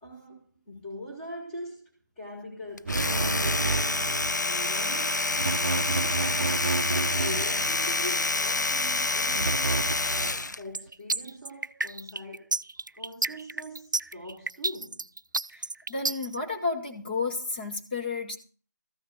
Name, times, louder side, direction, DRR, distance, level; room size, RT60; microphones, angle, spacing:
voice 1, 0.0-1.9 2.2-5.3 5.8-6.2 6.8-9.7 10.5-12.5 12.9-15.1, left 1 dB, 5° left, 1.8 m, -42 dB
Domestic sounds home sounds, 2.8-10.6, left 3 dB, 70° left, 0.6 m, -27 dB
sound 1, 2.9-4.4 5.3-7.9 9.3-10.5, right 3 dB, 40° right, 0.7 m, -31 dB
sound 2, 10.7-16.4, right 2 dB, 85° right, 0.6 m, -30 dB
voice 2, 15.5-18.4, left 4 dB, 30° left, 2.2 m, -32 dB
14.5 x 6.6 x 7.6 m
figure-of-eight pair, 165°, 10 cm